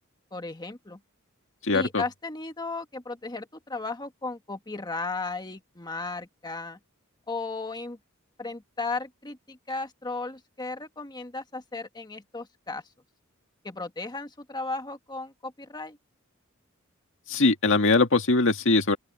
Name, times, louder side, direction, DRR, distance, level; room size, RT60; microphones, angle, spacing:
voice 1, 0.3-1.0 1.7-6.8 7.3-8.0 8.4-12.8 13.6-16.0, left 3 dB, 20° left, 1.6 m, -35 dB
voice 2, 1.6-2.0 17.3-19.0, left 3 dB, 65° left, 1.9 m, -21 dB
open air
head